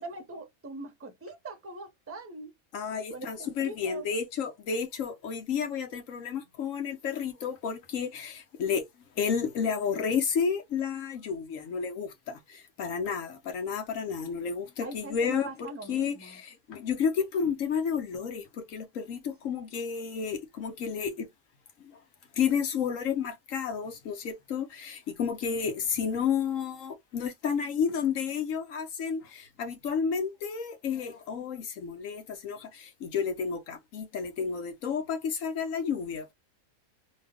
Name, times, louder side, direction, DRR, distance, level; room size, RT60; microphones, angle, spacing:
voice 1, 0.0-2.5 3.1-4.1 14.8-16.4, right 2 dB, 15° right, 0.6 m, -42 dB
voice 2, 2.7-8.9 9.2-21.3 21.8-22.0 22.4-36.3, left 6 dB, 65° left, 1.2 m, -31 dB
3.0 x 2.4 x 3.4 m
omnidirectional pair, 1.5 m